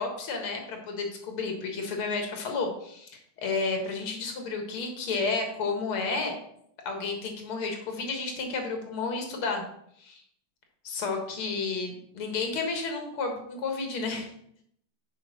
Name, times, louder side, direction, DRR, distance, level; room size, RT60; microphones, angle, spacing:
voice 1, 0.0-6.3 6.9-9.6 10.0-10.2 10.8-14.3, left 4 dB, 85° left, 4 dB, 2.4 m, -31 dB
6.9 x 5.1 x 6.4 m, 0.71 s
omnidirectional pair, 2.3 m